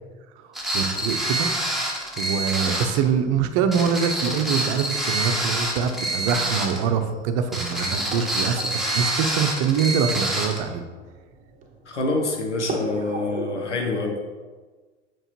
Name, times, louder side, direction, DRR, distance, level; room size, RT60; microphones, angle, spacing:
sound 1, 0.5-3.0 3.7-6.8 7.5-10.6, right 1 dB, ahead, 1.5 m, -26 dB
voice 1, 0.7-1.5 2.2-10.8, right 6 dB, 45° right, 8 dB, 0.7 m, -24 dB
sound 2, 2.9-13.6, right 2 dB, 25° right, 1.0 m, -40 dB
voice 2, 11.9-14.3, left 2 dB, 85° left, 1 dB, 1.0 m, -26 dB
7.7 x 4.7 x 3.1 m, 1.4 s
figure-of-eight pair, 85°, 35 cm